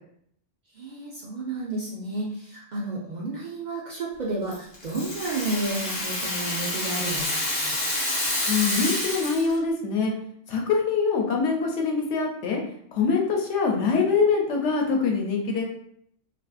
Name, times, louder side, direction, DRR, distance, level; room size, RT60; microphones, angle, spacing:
voice 1, 0.7-7.8, right 2 dB, 55° right, -4 dB, 0.5 m, -32 dB
Rattle (instrument), 4.5-9.6, left 1 dB, 45° left, 0.7 m, -28 dB
voice 2, 8.5-10.1 10.5-12.6 12.9-15.6, left 5 dB, 85° left, 0 dB, 0.9 m, -24 dB
2.5 x 2.4 x 2.3 m, 0.67 s
omnidirectional pair, 1.2 m